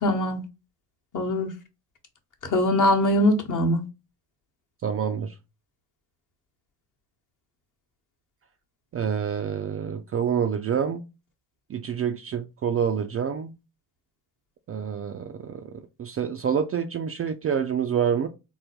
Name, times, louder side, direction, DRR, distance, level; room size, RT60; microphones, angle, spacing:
voice 1, 0.0-0.4 1.1-1.5 2.5-3.9, left 1 dB, 40° left, 1.0 m, -22 dB
voice 2, 4.8-5.3 8.9-11.0 11.7-13.5 14.7-15.7 16.0-18.3, right 7 dB, 30° right, 0.4 m, -27 dB
3.7 x 2.1 x 2.9 m
hypercardioid pair, 60°, 46 cm